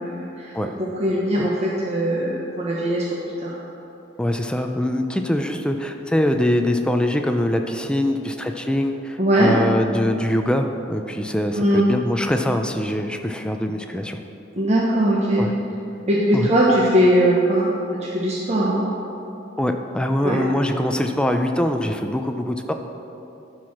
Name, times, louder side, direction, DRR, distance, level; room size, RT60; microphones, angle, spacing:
voice 1, 0.0-0.5 0.8-3.0 3.4-3.5 4.6-4.7 9.2-9.5 11.5-11.9 14.6-15.5 16.1-17.7 17.9-18.8 20.2-20.4, right 1 dB, 35° right, -5 dB, 1.1 m, -20 dB
voice 2, 4.2-14.2 15.4-15.5 16.3-16.5 19.6-22.7, left 1 dB, 5° left, 5 dB, 0.4 m, -23 dB
14.0 x 4.8 x 5.9 m, 2.9 s
head